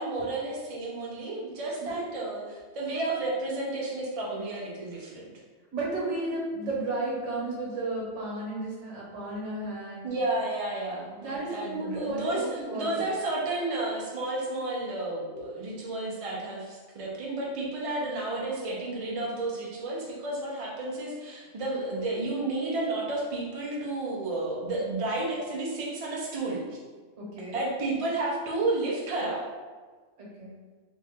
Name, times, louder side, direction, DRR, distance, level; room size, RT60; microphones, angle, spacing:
voice 1, 0.0-5.3 10.0-26.8 27.5-29.4, right 2 dB, 35° right, -4 dB, 0.6 m, -31 dB
voice 2, 5.7-10.1 11.2-13.0 15.3-15.5 27.2-27.6 30.2-30.5, right 2 dB, 70° right, -5 dB, 1.4 m, -33 dB
3.1 x 2.6 x 3.5 m, 1.4 s
omnidirectional pair, 1.3 m